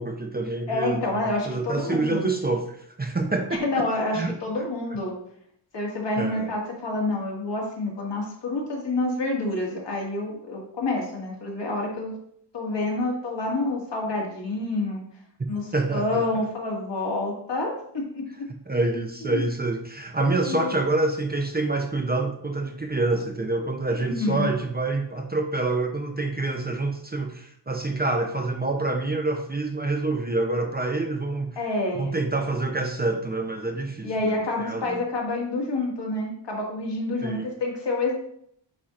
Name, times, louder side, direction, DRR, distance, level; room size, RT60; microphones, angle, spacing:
voice 1, 0.0-1.0 1.5-3.9 4.1-4.3 6.2-6.5 15.7-16.2 18.7-31.5 32.0-35.0 37.2-37.5, right 2 dB, 20° right, 3 dB, 0.6 m, -27 dB
voice 2, 0.7-2.3 3.6-5.1 5.7-12.2 12.5-15.0 15.5-18.2 19.2-19.4 20.2-20.8 24.0-24.5 31.6-32.2 34.0-38.1, left 2 dB, 65° left, -2 dB, 2.0 m, -28 dB
8.5 x 4.4 x 2.5 m, 0.67 s
wide cardioid pair, 115°, 46 cm